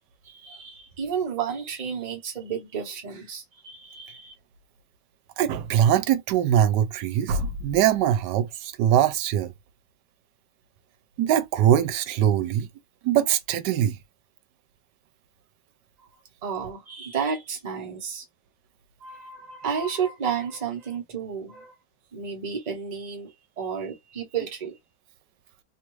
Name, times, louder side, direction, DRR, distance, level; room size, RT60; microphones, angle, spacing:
voice 1, 0.3-4.3 16.4-18.2 19.0-21.7 22.1-23.3 23.6-24.7, right 7 dB, 30° right, 0.9 m, -31 dB
voice 2, 5.4-9.5 11.2-12.7 13.0-14.0, right 10 dB, 85° right, 1.2 m, -22 dB
3.0 x 2.5 x 3.1 m
omnidirectional pair, 1.8 m